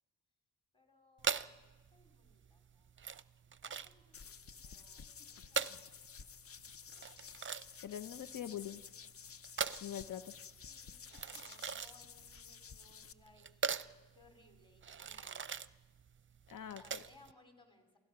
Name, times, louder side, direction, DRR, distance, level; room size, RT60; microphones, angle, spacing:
voice 1, 0.7-1.5 1.9-2.9 3.6-6.4 10.7-15.5 16.8-18.0, left 2 dB, 15° left, 4 dB, 3.4 m, -66 dB
sound 1, 1.2-17.3, right 6 dB, 40° right, 0.5 m, -42 dB
sound 2, 4.1-13.1, left 7 dB, 45° left, 0.5 m, -53 dB
voice 2, 7.8-8.8 9.8-10.3 16.5-17.0, left 10 dB, 80° left, 12 dB, 0.7 m, -43 dB
28.5 x 16.0 x 5.9 m, 1.2 s
wide cardioid pair, 105°, 32 cm